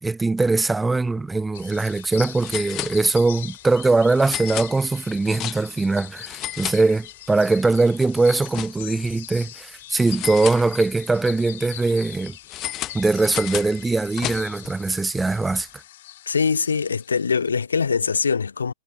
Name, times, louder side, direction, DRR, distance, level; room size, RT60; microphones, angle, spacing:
voice 1, 0.0-12.3 12.9-15.7, right 3 dB, 10° right, 0.8 m, -21 dB
sound 1, 1.2-1.4 1.7-1.8 2.4-3.4 4.2-5.9 6.2-7.4 7.7-9.1 10.1-11.2 12.5-14.7, left 14 dB, 30° left, 0.6 m, -33 dB
sound 2, 1.5-17.5, left 14 dB, 50° left, 2.8 m, -41 dB
voice 2, 16.3-18.7, left 5 dB, 70° left, 0.8 m, -22 dB
figure-of-eight pair, 105°, 0 cm